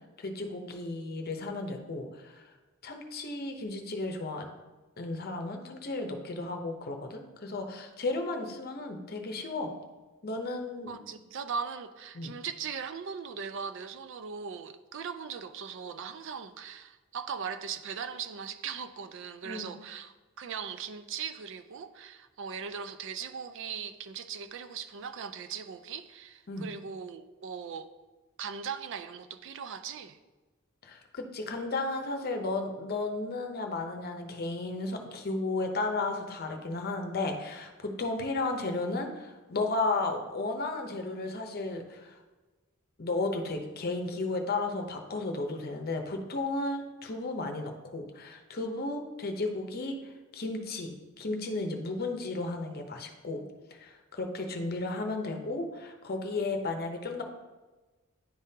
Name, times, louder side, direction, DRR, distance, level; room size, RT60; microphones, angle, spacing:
voice 1, 0.2-2.5 2.8-4.5 5.0-9.7 10.2-11.0 12.1-12.3 19.4-19.7 26.5-26.7 30.8-42.2 43.0-50.0 50.3-53.4 53.8-57.2, left 2 dB, 50° left, 4 dB, 0.7 m, -34 dB
voice 2, 10.9-27.9 28.4-30.2, right 6 dB, 65° right, 10 dB, 0.4 m, -39 dB
10.0 x 3.6 x 2.8 m, 1.2 s
head